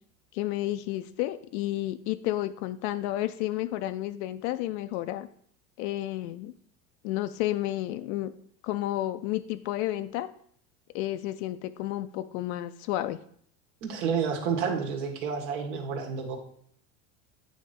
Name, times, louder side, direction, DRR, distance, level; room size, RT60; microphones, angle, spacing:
voice 1, 0.3-5.3 5.8-6.5 7.0-8.3 8.6-10.3 10.9-13.2, left 14 dB, 75° left, 10 dB, 0.5 m, -31 dB
voice 2, 13.8-16.4, right 6 dB, 80° right, 2 dB, 1.6 m, -30 dB
8.7 x 2.9 x 5.1 m, 0.63 s
supercardioid pair, 125°, 35 cm